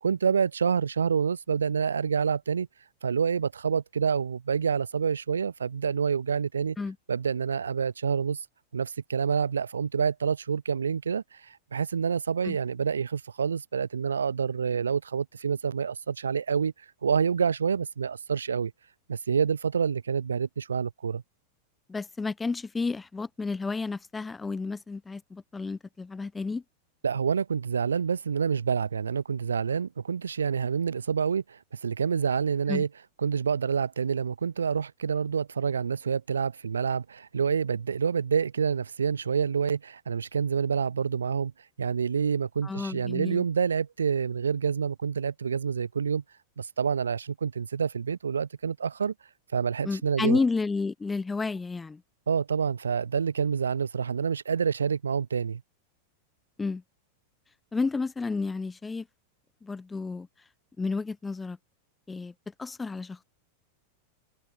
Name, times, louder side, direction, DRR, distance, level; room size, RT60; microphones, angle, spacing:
voice 1, 0.0-2.7 3.0-6.8 7.1-8.5 8.7-16.7 17.0-18.7 19.1-21.2 27.0-32.9 33.2-41.5 41.8-46.2 46.6-49.1 49.5-50.4 52.3-55.6, right 6 dB, 70° right, 0.5 m, -27 dB
voice 2, 21.9-26.6 32.7-32.8 42.6-43.4 49.8-52.0 56.6-56.8 57.7-59.1 59.6-60.3 60.8-61.6 62.1-62.3 62.6-63.2, left 4 dB, 10° left, 1.3 m, -31 dB
figure-of-eight pair, 90°, 0 cm